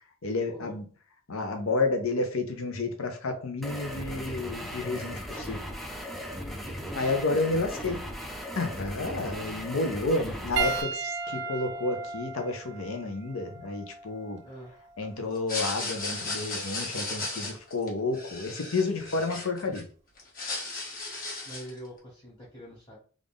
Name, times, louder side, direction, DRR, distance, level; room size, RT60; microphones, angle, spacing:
voice 1, 0.2-0.9 1.3-5.6 7.0-8.0 8.6-14.4 15.0-19.9, left 3 dB, 80° left, 5 dB, 0.8 m, -30 dB
sound 1, 3.6-10.8, equal, ahead, 0.4 m, -37 dB
voice 2, 6.3-7.9 14.4-14.7 21.4-22.9, equal, 20° left, -8 dB, 1.3 m, -45 dB
Piano, 10.6-15.2 16.2-16.3 18.3-18.4, right 5 dB, 55° right, 0.5 m, -35 dB
sound 2, 15.4-19.8 20.2-21.8, left 3 dB, 45° left, 1.2 m, -35 dB
3.7 x 2.5 x 3.5 m, 0.42 s
head